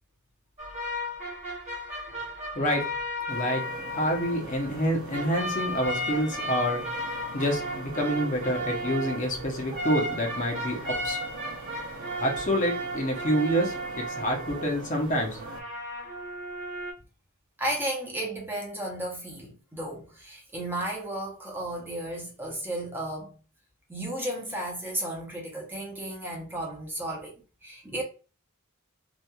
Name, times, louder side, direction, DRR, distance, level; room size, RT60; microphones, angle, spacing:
sound 1, 0.6-4.9 5.1-15.0 15.4-16.9, equal, 35° right, 1.0 m, -34 dB
voice 1, 3.3-3.6 3.9-6.8 7.3-11.2 12.2-15.4, equal, 35° left, 0.7 m, -27 dB
sound 2, 3.3-15.6, right 3 dB, 80° right, 0.7 m, -43 dB
voice 2, 17.6-23.3 23.9-27.3 27.6-28.0, right 1 dB, 10° right, 0.6 m, -34 dB
2.8 x 2.3 x 2.2 m
head